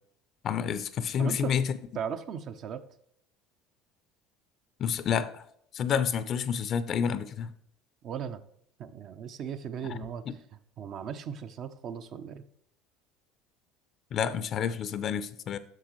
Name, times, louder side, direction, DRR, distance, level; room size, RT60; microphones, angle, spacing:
voice 1, 0.4-1.6 4.8-5.3 5.7-7.5 14.1-15.6, left 7 dB, 50° left, 0.5 m, -29 dB
voice 2, 1.2-1.5 1.9-2.8 8.0-8.4 8.8-10.4 10.8-12.4, right 8 dB, 50° right, 0.6 m, -37 dB
7.6 x 6.6 x 3.1 m
hypercardioid pair, 70°, 0 cm